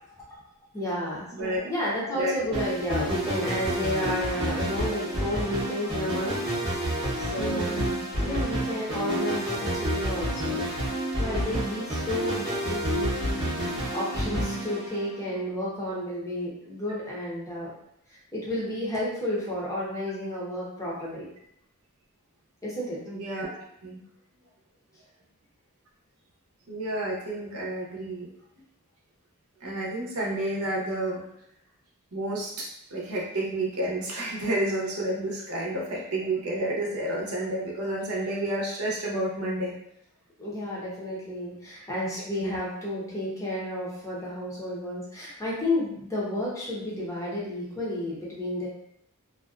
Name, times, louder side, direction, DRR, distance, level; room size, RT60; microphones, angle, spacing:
voice 1, 0.7-6.5 7.3-7.8 8.1-10.6 11.2-17.7 18.1-21.3 22.6-23.0 40.4-48.7, left 1 dB, 15° left, -6 dB, 0.6 m, -32 dB
voice 2, 1.3-1.6 2.1-2.6 7.4-8.1 23.0-24.0 26.7-28.3 29.6-31.2 32.1-39.8 42.4-42.6, right 1 dB, 75° right, -3 dB, 0.7 m, -30 dB
sound 1, 2.5-15.4, right 1 dB, 25° right, 0.7 m, -29 dB
2.5 x 2.2 x 2.3 m, 0.74 s
head